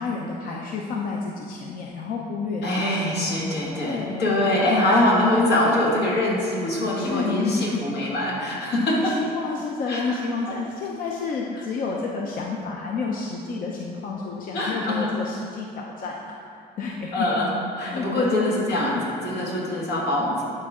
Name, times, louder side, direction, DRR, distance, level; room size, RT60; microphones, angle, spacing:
voice 1, 0.0-3.0 3.8-4.3 4.7-5.1 7.0-7.8 8.9-17.3 17.8-18.5 18.8-19.0, left 4 dB, 55° left, -1 dB, 0.7 m, -30 dB
voice 2, 2.6-9.2 9.9-10.2 14.5-15.2 17.1-20.4, left 1 dB, 85° left, -4 dB, 1.9 m, -23 dB
11.5 x 4.4 x 3.7 m, 2.4 s
cardioid pair, 110°, 17 cm